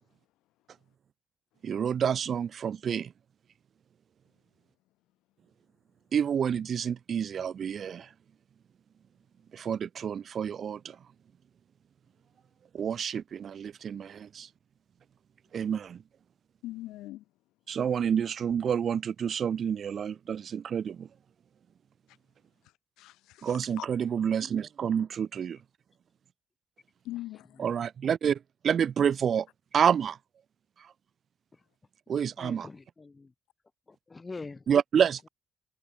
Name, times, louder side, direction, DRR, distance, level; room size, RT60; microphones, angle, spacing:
voice 1, 1.6-3.1 6.1-8.1 9.5-11.0 12.7-14.5 15.5-16.0 17.7-21.1 23.4-25.6 27.6-28.4 28.6-29.5 29.7-30.2 32.1-32.7 34.7-35.3, right 8 dB, 55° right, 0.9 m, -28 dB
voice 2, 16.6-17.5 22.1-22.2 22.6-23.9 27.0-27.6, left 16 dB, 75° left, 4.3 m, -42 dB
voice 3, 32.4-33.3 33.9-34.7, left 3 dB, 30° left, 1.4 m, -44 dB
hypercardioid pair, 45°, 0 cm